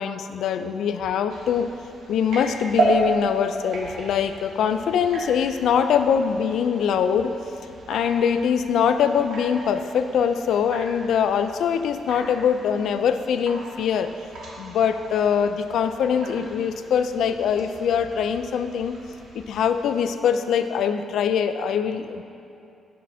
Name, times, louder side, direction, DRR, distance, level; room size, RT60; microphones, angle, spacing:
voice 1, 0.0-1.7 2.1-7.3 7.9-14.1 14.6-19.0 19.3-22.2, left 7 dB, 75° left, 9 dB, 0.3 m, -23 dB
sound 1, 1.3-20.0, right 2 dB, 80° right, 1.6 m, -34 dB
11.5 x 6.3 x 2.7 m, 2.7 s
cardioid pair, 140°, 0 cm